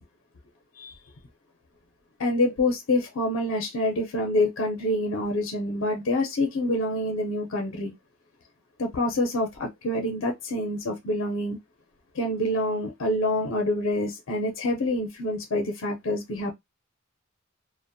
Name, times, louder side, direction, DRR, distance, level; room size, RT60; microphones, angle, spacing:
voice 1, 2.2-7.9 8.8-11.6 12.1-16.5, left 1 dB, 75° left, 0.6 m, -26 dB
2.5 x 2.1 x 2.5 m
head